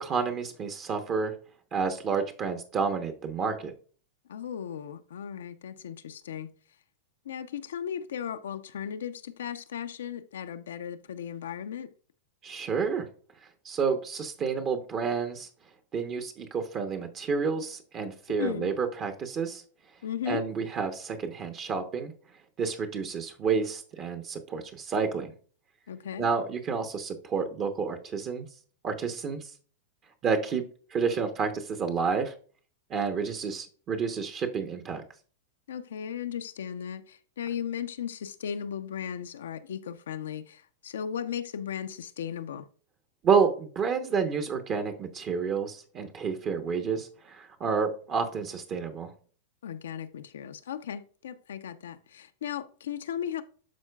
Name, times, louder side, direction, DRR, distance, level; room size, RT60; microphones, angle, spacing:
voice 1, 0.0-1.3 1.7-3.7 12.4-13.1 13.6-15.5 15.9-19.6 20.3-22.1 22.6-25.3 26.2-28.5 28.8-29.5 30.2-30.6 30.9-32.3 32.9-35.0 43.2-49.1, right 5 dB, 35° right, 0.9 m, -29 dB
voice 2, 4.3-6.5 7.2-11.9 18.3-18.7 20.0-20.5 25.9-26.3 35.7-42.7 49.6-53.4, left 8 dB, 70° left, 0.6 m, -36 dB
12.5 x 4.5 x 2.3 m
hypercardioid pair, 100°, 0 cm